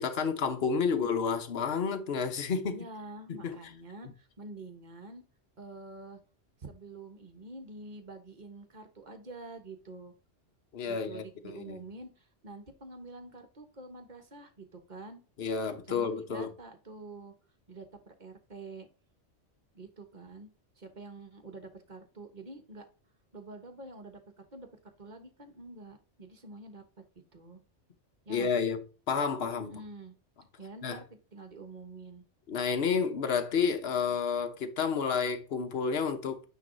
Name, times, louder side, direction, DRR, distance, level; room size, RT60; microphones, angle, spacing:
voice 1, 0.0-2.8 3.3-3.6 10.7-11.8 15.4-16.5 28.3-29.7 30.8-31.0 32.5-36.4, left 6 dB, 55° left, 1.2 m, -30 dB
voice 2, 2.7-5.2 5.6-6.2 6.6-10.1 10.9-15.2 15.8-17.3 17.7-18.9 19.7-20.5 20.8-22.9 23.3-26.8 27.3-27.6 28.2-28.7 29.6-30.2 30.6-32.2, right 2 dB, 40° right, 1.3 m, -47 dB
9.3 x 3.1 x 3.9 m
omnidirectional pair, 1.3 m